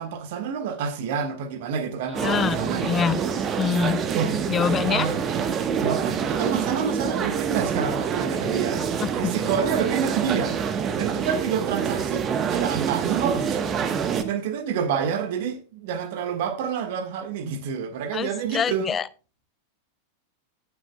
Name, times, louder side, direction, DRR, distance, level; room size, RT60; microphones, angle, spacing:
voice 1, 0.0-3.0 4.1-4.4 4.8-5.2 5.8-8.8 9.1-19.0, right 7 dB, 50° right, 1.6 m, -28 dB
sound 1, 2.1-14.2, right 7 dB, 30° right, 1.2 m, -26 dB
voice 2, 2.2-3.2 3.6-4.0 4.5-5.1 9.0-9.1 18.1-19.1, left 7 dB, 20° left, 0.3 m, -25 dB
17.5 x 7.3 x 2.3 m
figure-of-eight pair, 90°, 0 cm